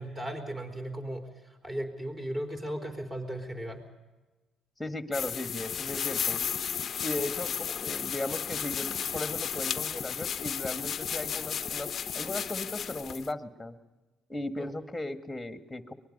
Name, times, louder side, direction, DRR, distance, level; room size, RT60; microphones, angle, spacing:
voice 1, 0.0-3.8 14.6-14.7, right 1 dB, 25° right, 5 dB, 4.1 m, -36 dB
voice 2, 4.8-6.4 7.0-11.9 12.1-13.8 14.3-15.9, left 2 dB, 10° left, 7 dB, 1.7 m, -36 dB
sound 1, 5.1-13.3, left 8 dB, 50° left, 0.5 m, -33 dB
23.5 x 20.0 x 5.4 m, 1.2 s
supercardioid pair, 70°, 0 cm